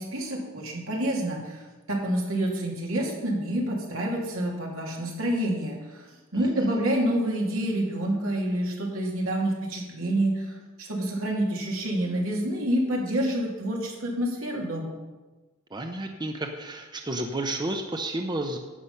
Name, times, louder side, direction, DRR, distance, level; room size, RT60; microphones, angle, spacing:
voice 1, 0.0-6.0 6.3-14.9, right 1 dB, 80° right, -2 dB, 2.7 m, -28 dB
voice 2, 6.3-6.8 15.7-18.6, right 1 dB, 20° right, 4 dB, 0.7 m, -32 dB
11.0 x 7.9 x 5.6 m, 1.2 s
head